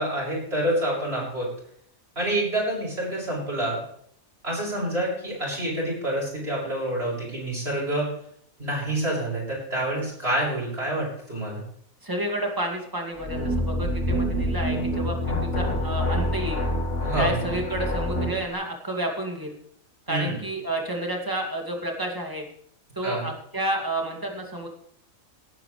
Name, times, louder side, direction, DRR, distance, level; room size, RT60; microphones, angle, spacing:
voice 1, 0.0-1.5 2.2-3.8 4.4-8.1 8.6-11.6 17.0-17.3 20.1-20.4 23.0-23.3, right 1 dB, 45° right, -5 dB, 7.2 m, -27 dB
voice 2, 12.0-16.6 17.2-19.5 20.1-22.4 23.0-24.7, right 1 dB, 15° right, 1 dB, 2.5 m, -30 dB
sound 1, 13.2-18.4, equal, 60° left, 2.3 m, -26 dB
18.5 x 11.0 x 3.3 m, 0.66 s
omnidirectional pair, 1.5 m